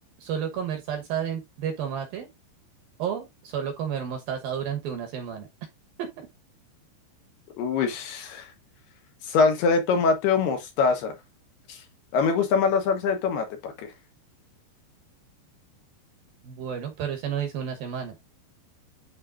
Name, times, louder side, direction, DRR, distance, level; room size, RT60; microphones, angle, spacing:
voice 1, 0.2-2.3 3.0-5.5 6.0-6.3 16.4-18.2, right 8 dB, 65° right, 2.5 m, -31 dB
voice 2, 7.6-8.5 9.2-11.1 11.7-11.8 12.1-13.9, left 5 dB, 70° left, 2.9 m, -23 dB
11.5 x 4.3 x 2.5 m
omnidirectional pair, 5.3 m